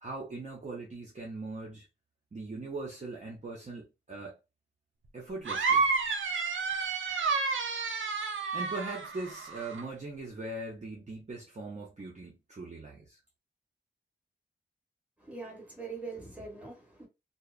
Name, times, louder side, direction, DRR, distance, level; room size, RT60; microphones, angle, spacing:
voice 1, 0.0-1.9 2.3-4.4 5.1-5.9 8.5-13.2, right 2 dB, 40° right, 0.6 m, -40 dB
sound 1, 5.5-9.8, right 4 dB, 85° right, 0.5 m, -30 dB
voice 2, 15.2-17.1, right 4 dB, 5° right, 1.2 m, -42 dB
2.7 x 2.0 x 2.3 m
wide cardioid pair, 120°, 20 cm